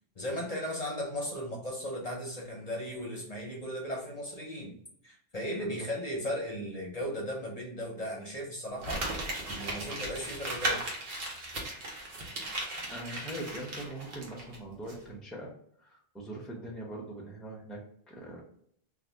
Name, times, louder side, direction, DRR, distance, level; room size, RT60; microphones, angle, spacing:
voice 1, 0.2-4.7 5.0-9.0 9.4-10.8, equal, 45° left, -2 dB, 0.7 m, -36 dB
Crumpling crinkling, 8.8-14.6 14.9-15.0, right 1 dB, 70° right, 1.0 m, -36 dB
voice 2, 12.9-15.5 15.8-18.4, right 1 dB, ahead, -1 dB, 0.5 m, -42 dB
2.6 x 2.4 x 3.3 m, 0.67 s
omnidirectional pair, 1.1 m